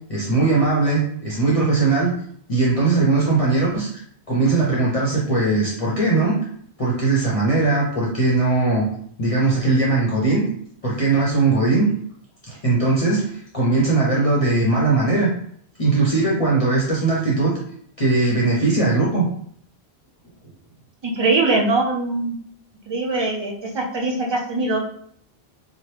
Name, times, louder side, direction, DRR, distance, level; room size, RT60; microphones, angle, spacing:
voice 1, 0.1-2.1 2.5-3.9 4.3-6.4 6.8-8.8 9.2-10.4 10.8-11.9 12.5-15.3 15.8-17.6 18.0-19.3, right 3 dB, 40° left, -5 dB, 0.6 m, -19 dB
voice 2, 21.0-22.4 22.9-24.8, right 3 dB, 40° right, -1 dB, 0.4 m, -22 dB
2.9 x 2.0 x 3.2 m, 0.63 s
omnidirectional pair, 1.1 m